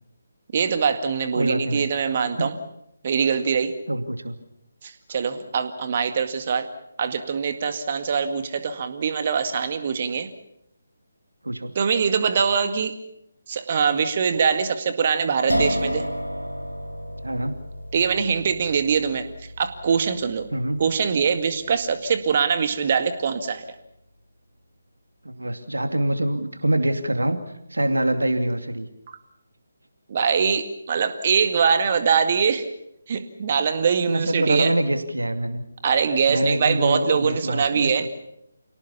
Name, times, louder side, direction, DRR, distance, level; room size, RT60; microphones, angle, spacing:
voice 1, 0.5-2.5 3.0-3.7 4.8-6.7 7.0-10.3 11.8-12.9 13.5-16.0 17.9-19.2 19.6-20.5 20.8-23.6 30.1-32.6 33.1-34.7 35.8-38.1, right 6 dB, 35° right, 9 dB, 2.0 m, -23 dB
voice 2, 1.3-1.9 2.4-2.5 3.9-4.3 11.4-11.7 17.2-17.5 20.5-20.8 25.2-27.4 27.7-28.9 34.1-35.6 36.3-38.1, right 1 dB, 75° right, 8 dB, 2.6 m, -25 dB
sound 1, 15.5-22.4, equal, 85° left, 2.5 m, -32 dB
28.0 x 18.0 x 7.1 m, 0.81 s
figure-of-eight pair, 150°, 0 cm